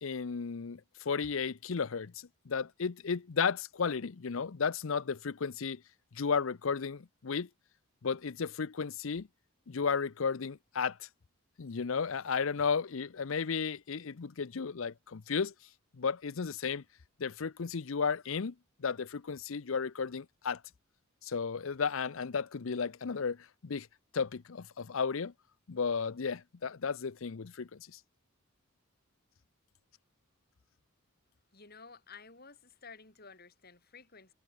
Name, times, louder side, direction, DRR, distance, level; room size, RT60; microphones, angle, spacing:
voice 1, 0.0-5.8 6.1-7.5 8.0-9.3 9.7-11.1 11.6-15.5 16.0-16.8 17.2-18.5 18.8-20.6 21.2-23.9 24.1-25.3 25.7-28.0, left 5 dB, 70° left, 0.6 m, -34 dB
voice 2, 31.5-34.3, left 5 dB, 45° left, 6.3 m, -53 dB
head